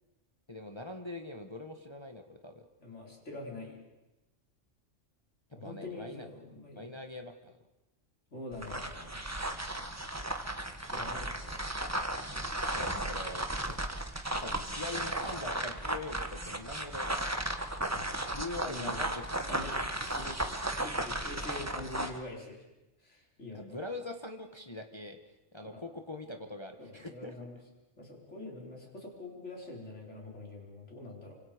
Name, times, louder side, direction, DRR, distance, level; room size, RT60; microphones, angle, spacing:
voice 1, 0.5-2.7 5.6-6.3 6.7-7.6 12.3-13.9 14.2-17.4 18.3-19.8 23.5-25.2 25.5-27.4, left 2 dB, 25° left, 5 dB, 1.3 m, -43 dB
voice 2, 2.8-3.8 5.6-7.0 8.3-9.9 10.8-11.7 17.9-18.2 18.6-19.1 19.4-22.6 23.0-23.8 25.7-25.8 26.8-27.6 28.0-31.3, left 2 dB, 75° left, 0 dB, 4.8 m, -45 dB
sound 1, 8.5-22.2, right 1 dB, 15° right, 1.4 m, -35 dB
28.5 x 25.5 x 5.1 m, 1.0 s
omnidirectional pair, 1.2 m